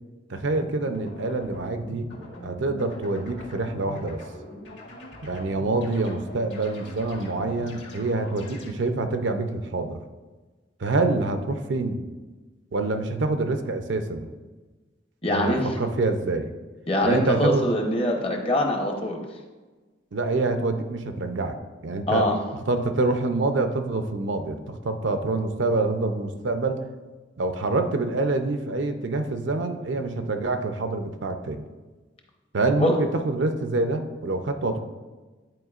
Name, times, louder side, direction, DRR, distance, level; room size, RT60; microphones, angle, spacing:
voice 1, 0.3-2.1 2.4-4.2 5.2-10.0 10.8-12.0 12.7-14.3 15.3-16.5 17.0-17.7 20.1-21.6 21.8-22.3 22.7-26.8 27.4-31.6 32.5-34.8, right 2 dB, 65° right, 7 dB, 0.6 m, -26 dB
sound 1, 0.5-8.7, left 1 dB, 65° left, 1.9 m, -42 dB
voice 2, 15.2-15.9 16.9-19.2 22.1-22.4 32.8-33.0, left 1 dB, 30° left, 2 dB, 0.8 m, -23 dB
11.0 x 4.7 x 2.4 m, 1.3 s
head